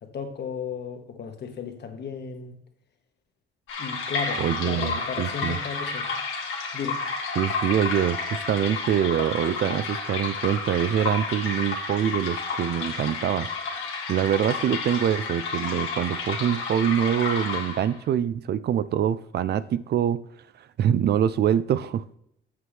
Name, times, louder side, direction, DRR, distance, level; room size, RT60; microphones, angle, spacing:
voice 1, 0.0-2.5 3.8-6.2 6.7-7.0, left 6 dB, 55° left, 5 dB, 1.5 m, -34 dB
sound 1, 3.7-18.0, left 4 dB, 85° left, 1.8 m, -31 dB
voice 2, 4.4-5.6 7.4-13.5 14.1-20.2 20.6-22.2, right 10 dB, 55° right, 16 dB, 0.4 m, -25 dB
8.1 x 7.7 x 3.4 m, 0.75 s
cardioid pair, 90°, 20 cm